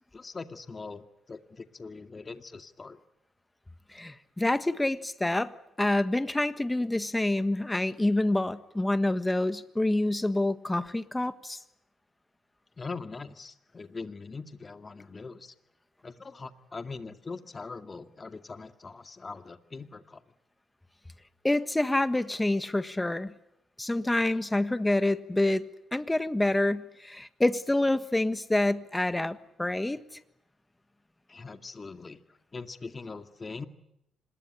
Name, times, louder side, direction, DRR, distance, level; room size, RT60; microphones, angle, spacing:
voice 1, 0.1-3.0 12.8-15.5 16.0-20.2 31.3-32.2 32.5-33.7, left 4 dB, 30° left, 8 dB, 2.1 m, -42 dB
voice 2, 3.9-5.5 5.8-11.6 21.4-23.3 23.8-25.6 25.9-30.0, left 1 dB, 10° left, 12 dB, 1.5 m, -27 dB
26.5 x 21.0 x 9.9 m, 0.80 s
cardioid pair, 90°, 0 cm